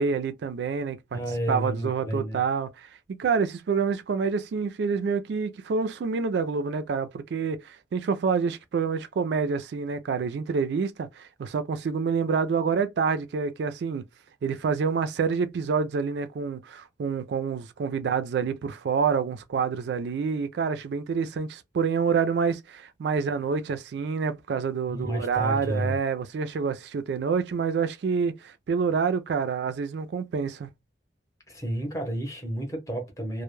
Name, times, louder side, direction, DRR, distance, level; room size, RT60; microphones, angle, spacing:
voice 1, 0.0-1.2 1.5-14.0 14.4-30.7, right 5 dB, 65° right, 0.3 m, -27 dB
voice 2, 1.1-2.4 24.9-26.0 31.5-33.4, right 1 dB, 15° left, 0.7 m, -31 dB
2.1 x 2.0 x 3.0 m
head